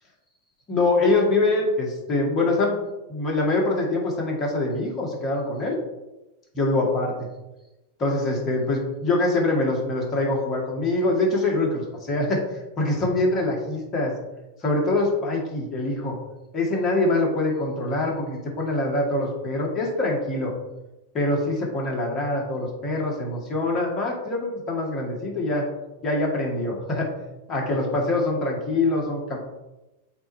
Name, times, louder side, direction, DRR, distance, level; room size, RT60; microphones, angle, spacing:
voice 1, 0.7-2.8 3.1-5.8 6.6-7.1 8.0-14.1 14.6-16.2 16.5-20.5 21.1-25.7 26.0-27.1 27.5-29.4, left 2 dB, 30° left, -2 dB, 2.1 m, -24 dB
7.8 x 3.0 x 4.2 m, 1.0 s
figure-of-eight pair, 95°, 0 cm